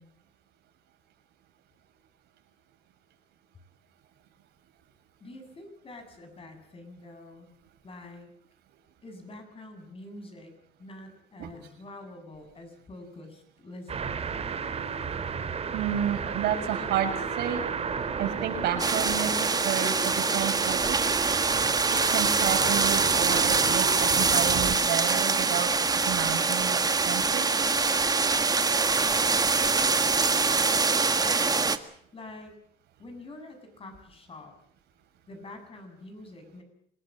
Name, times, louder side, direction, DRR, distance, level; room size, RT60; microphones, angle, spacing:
voice 1, 5.2-7.5 7.8-8.3 9.0-10.5 10.8-14.2 30.0-30.9 32.1-32.6 33.0-34.5 35.3-36.6, left 2 dB, 35° left, 6 dB, 7.9 m, -46 dB
sound 1, 13.9-24.8, right 6 dB, 35° right, 3.5 m, -32 dB
voice 2, 15.7-17.6 18.2-21.0 22.1-27.5, right 9 dB, 75° right, 4 dB, 7.0 m, -31 dB
sound 2, 18.8-31.8, right 4 dB, 20° right, 1.7 m, -24 dB
26.5 x 19.5 x 7.7 m, 0.67 s
cardioid pair, 110°, 17 cm